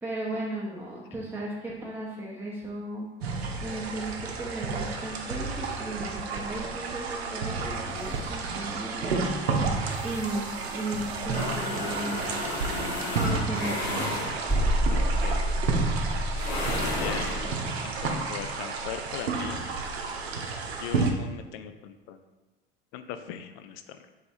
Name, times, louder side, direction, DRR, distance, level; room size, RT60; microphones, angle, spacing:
voice 1, 0.0-3.1 3.6-9.6 10.0-12.4 13.2-14.1, right 1 dB, 5° right, -6 dB, 0.8 m, -35 dB
sound 1, 3.2-21.1, right 4 dB, 75° right, 0.6 m, -31 dB
sound 2, 10.0-14.8 16.3-17.5, left 2 dB, 75° left, 1.0 m, -34 dB
sound 3, 14.5-17.6, equal, 10° left, 1.0 m, -27 dB
voice 2, 14.9-15.5 15.9-16.3 17.0-19.7 20.8-22.2 22.9-24.0, left 9 dB, 50° left, 9 dB, 0.5 m, -40 dB
3.5 x 3.2 x 4.3 m, 1.2 s
figure-of-eight pair, 65°, 32 cm